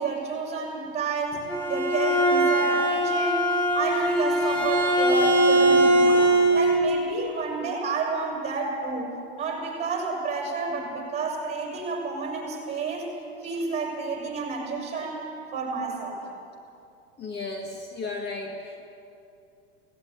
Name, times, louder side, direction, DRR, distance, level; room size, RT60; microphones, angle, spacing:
voice 1, 0.0-13.1 13.4-16.2, right 4 dB, 20° right, 0 dB, 6.0 m, -30 dB
Bowed string instrument, 1.3-6.8, right 1 dB, 15° left, 3.7 m, -21 dB
voice 2, 17.2-18.9, left 3 dB, 30° left, 3 dB, 1.8 m, -34 dB
17.5 x 16.0 x 9.6 m, 2.6 s
supercardioid pair, 130°, 33 cm